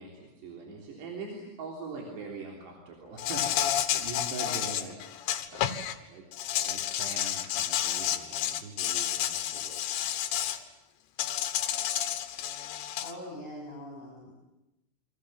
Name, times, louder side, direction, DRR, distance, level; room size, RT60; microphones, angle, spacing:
voice 1, 0.0-5.0 5.5-5.8 6.1-6.3 6.6-10.6, right 3 dB, 60° right, 0 dB, 5.3 m, -43 dB
Insect, 3.2-5.9 6.3-10.6 11.2-13.1, left 11 dB, 70° left, 3.4 m, -30 dB
voice 2, 13.0-14.4, left 1 dB, 40° left, -3 dB, 8.9 m, -43 dB
29.5 x 25.0 x 7.7 m, 0.92 s
omnidirectional pair, 5.7 m